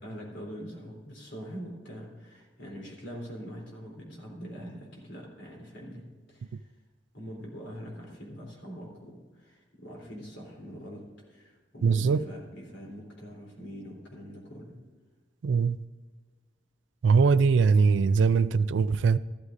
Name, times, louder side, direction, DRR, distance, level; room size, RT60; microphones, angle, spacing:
voice 1, 0.0-6.6 7.1-11.0 11.3-14.8, equal, 75° left, 3.5 m, -43 dB
voice 2, 11.8-12.3 15.4-15.8 17.0-19.2, right 5 dB, 80° right, 0.4 m, -22 dB
13.5 x 13.0 x 2.6 m
head